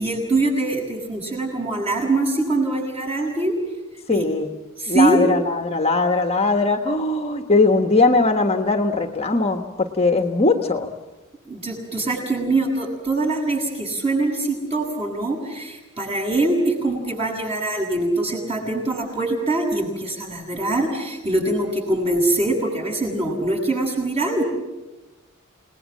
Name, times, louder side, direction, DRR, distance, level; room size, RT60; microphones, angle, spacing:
voice 1, 0.0-3.6 4.1-4.3 4.8-5.2 11.5-24.4, right 2 dB, 30° right, 1 dB, 7.7 m, -23 dB
voice 2, 4.1-4.5 4.9-10.9, left 3 dB, 30° left, 5 dB, 1.4 m, -20 dB
29.5 x 20.0 x 7.6 m, 1.1 s
head